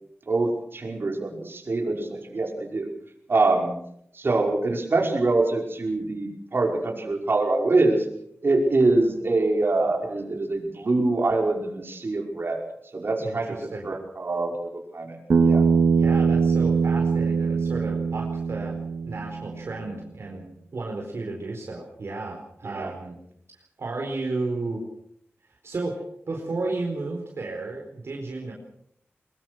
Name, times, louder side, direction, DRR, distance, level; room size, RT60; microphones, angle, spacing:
voice 1, 0.3-2.9 3.3-3.7 4.1-8.1 8.4-12.6 12.9-13.6 13.8-15.2 15.4-15.6 22.6-22.9, right 2 dB, 55° right, 1 dB, 5.4 m, -24 dB
voice 2, 13.2-13.9 15.9-18.8 19.0-20.5 20.7-23.2 23.8-24.8 25.6-28.5, right 3 dB, 70° right, 0 dB, 4.4 m, -33 dB
Bass guitar, 15.3-19.6, right 5 dB, 85° right, 2.6 m, -22 dB
22.5 x 22.0 x 6.3 m, 0.71 s
wide cardioid pair, 90°, 5 cm